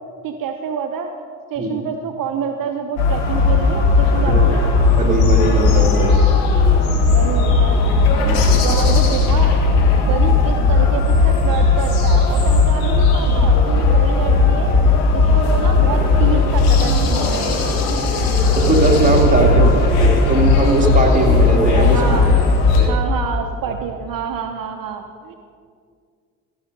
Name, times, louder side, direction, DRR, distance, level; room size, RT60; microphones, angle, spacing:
voice 1, 0.2-1.1 1.5-4.6 7.1-7.8 8.5-9.6 10.0-14.7 15.1-17.5 19.3-19.8 21.9-22.3 22.9-25.3, right 7 dB, 55° right, 5 dB, 0.8 m, -27 dB
sound 1, 3.0-22.8, left 3 dB, 90° left, 1.5 m, -15 dB
voice 2, 4.9-6.2 8.2-8.4 18.5-22.0 22.8-22.9, right 2 dB, 20° right, 0 dB, 2.2 m, -19 dB
14.5 x 6.4 x 5.2 m, 2.2 s
hypercardioid pair, 55°, 39 cm